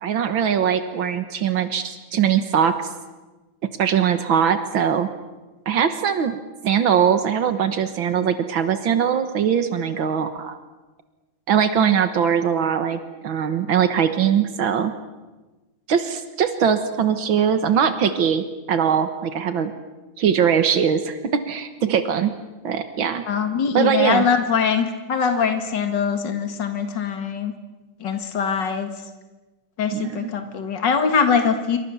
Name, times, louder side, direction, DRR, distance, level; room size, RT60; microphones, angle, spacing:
voice 1, 0.0-2.9 3.8-5.1 5.7-10.6 11.5-14.9 15.9-19.7 20.2-22.3 22.6-23.2 23.7-24.3 29.9-30.3, right 8 dB, 80° right, 9 dB, 2.1 m, -21 dB
voice 2, 23.3-27.5 28.0-28.9 29.8-31.8, left 6 dB, 65° left, 6 dB, 2.6 m, -22 dB
27.5 x 25.0 x 7.2 m, 1.2 s
omnidirectional pair, 2.1 m